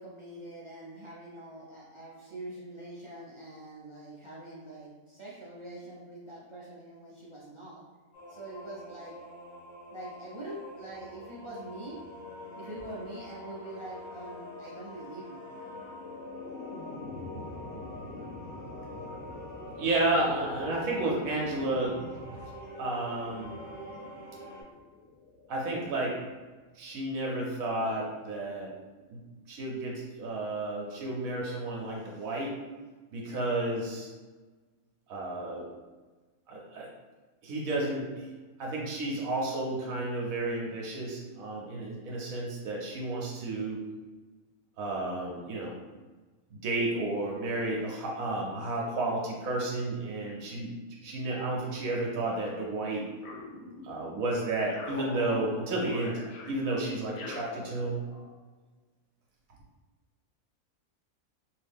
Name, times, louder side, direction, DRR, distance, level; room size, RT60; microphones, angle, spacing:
voice 1, 0.0-7.8 8.3-9.2 9.9-12.0 12.5-15.5 18.7-19.1, right 1 dB, 40° right, -8 dB, 0.4 m, -44 dB
sound 1, 8.1-24.6, left 1 dB, 30° left, 1.2 m, -46 dB
sound 2, 15.5-26.6, left 3 dB, 60° left, 0.6 m, -45 dB
voice 2, 19.8-22.0 22.3-22.5 22.8-23.5 25.5-26.2 26.7-28.7 29.1-29.2 29.5-32.6 33.1-34.1 35.1-35.7 36.5-36.9 37.4-38.3 38.6-43.8 44.8-45.7 46.5-50.7 51.0-53.1 53.8-56.2 56.5-58.0, right 2 dB, 75° right, -2 dB, 1.1 m, -32 dB
sound 3, 53.2-54.2 54.7-58.3, left 2 dB, 85° left, 1.1 m, -43 dB
2.8 x 2.7 x 3.4 m, 1.3 s
omnidirectional pair, 1.5 m